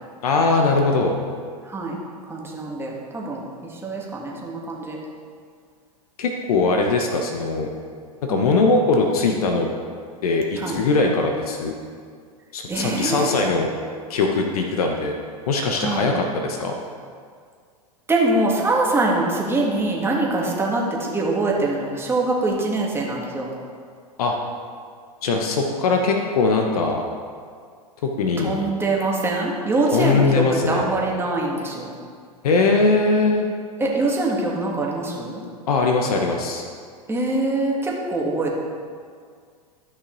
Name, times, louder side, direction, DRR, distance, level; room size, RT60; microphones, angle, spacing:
voice 1, 0.2-1.1 6.2-7.7 8.2-9.7 10.2-11.7 12.5-13.7 14.1-15.2 15.5-16.7 24.2-24.4 25.2-27.0 28.0-28.6 29.9-30.8 32.4-33.5 35.7-36.6, left 3 dB, 70° left, 2 dB, 1.1 m, -21 dB
voice 2, 2.3-3.4 3.8-5.0 8.3-8.5 10.6-10.8 12.7-13.4 15.8-16.1 18.1-23.5 28.4-31.9 33.8-35.4 37.1-38.5, right 2 dB, 10° right, -3 dB, 2.0 m, -23 dB
13.0 x 5.7 x 4.0 m, 2.1 s
hypercardioid pair, 100°, 20 cm